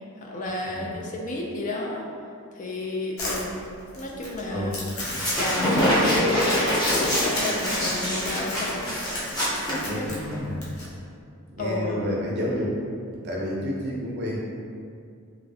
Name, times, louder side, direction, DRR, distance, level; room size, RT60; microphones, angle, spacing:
voice 1, 0.2-2.0 2.6-3.5 4.0-5.0 5.4-8.9 9.9-10.4 11.6-12.1, left 2 dB, 35° left, -1 dB, 0.3 m, -31 dB
voice 2, 0.7-1.0 4.5-4.8 9.8-10.6 10.8-10.9 11.5-12.7 13.2-14.4, equal, 50° right, -4 dB, 0.5 m, -30 dB
Crumpling crinkling, 3.2-10.9, left 1 dB, 70° left, 0.7 m, -34 dB
sound 1, 5.0-10.4, equal, 20° left, 0.7 m, -25 dB
3.0 x 2.5 x 2.6 m, 2.3 s
head